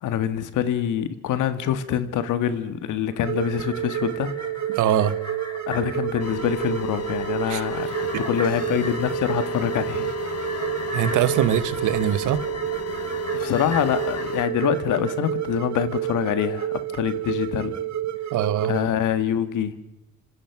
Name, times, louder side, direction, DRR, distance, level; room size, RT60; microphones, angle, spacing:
voice 1, 0.0-4.3 5.7-10.1 13.3-17.8 18.6-19.7, left 9 dB, 80° left, 12 dB, 1.9 m, -25 dB
sound 1, 3.0-15.6 15.9-16.0, left 1 dB, 15° left, 6.0 m, -40 dB
sound 2, 3.2-18.9, right 12 dB, 65° right, 1.9 m, -30 dB
voice 2, 4.7-5.1 7.5-7.6 8.1-8.2 10.9-12.4 18.3-18.7, right 10 dB, 85° right, 15 dB, 1.4 m, -22 dB
sound 3, 6.2-14.4, left 9 dB, 55° left, 1.4 m, -34 dB
27.0 x 25.5 x 6.1 m, 0.92 s
cardioid pair, 90°, 30 cm